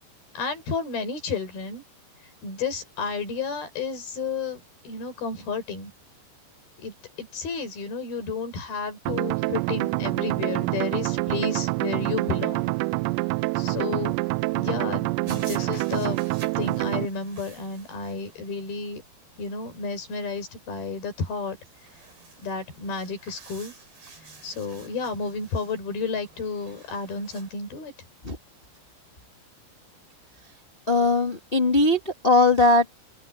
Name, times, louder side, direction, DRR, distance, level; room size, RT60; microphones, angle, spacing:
voice 1, 0.3-1.8 2.4-5.9 6.8-12.7 13.6-14.2 14.5-19.0 19.4-21.6 22.4-23.7 24.4-27.9, left 5 dB, 55° left, 6.5 m, -32 dB
sound 1, 9.1-17.1, right 24 dB, 85° right, 2.6 m, -26 dB
sound 2, 15.3-27.6, right 4 dB, 60° right, 10.0 m, -50 dB
voice 2, 30.9-33.0, left 2 dB, 75° left, 0.5 m, -20 dB
omnidirectional pair, 5.3 m